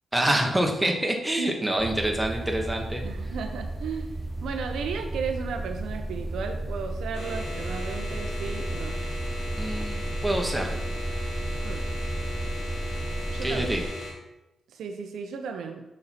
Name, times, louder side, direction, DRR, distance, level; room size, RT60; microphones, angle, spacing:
voice 1, 0.1-3.0 9.6-10.8 13.4-13.8, right 1 dB, 10° right, 2 dB, 1.0 m, -26 dB
sound 1, 1.8-13.9, right 1 dB, 25° right, 0.7 m, -33 dB
voice 2, 3.0-4.1 4.4-9.0 11.6-11.8 13.3-13.8 14.7-15.8, right 5 dB, 85° right, 5 dB, 0.6 m, -34 dB
sound 2, 7.1-14.1, left 1 dB, 70° left, 2.1 m, -37 dB
6.6 x 4.2 x 4.2 m, 0.94 s
cardioid pair, 105°, 0 cm